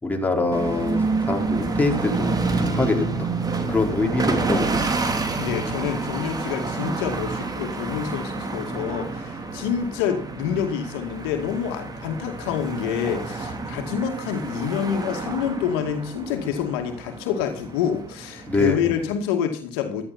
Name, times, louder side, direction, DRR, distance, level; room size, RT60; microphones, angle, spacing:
voice 1, 0.0-3.3 3.7-5.1 18.5-19.1, left 2 dB, 10° left, 1 dB, 4.6 m, -25 dB
sound 1, 0.5-19.1, right 3 dB, 30° right, 3.3 m, -29 dB
voice 2, 5.4-20.1, left 8 dB, 85° left, 5 dB, 2.3 m, -27 dB
13.5 x 13.0 x 4.3 m, 0.40 s
supercardioid pair, 75°, 13 cm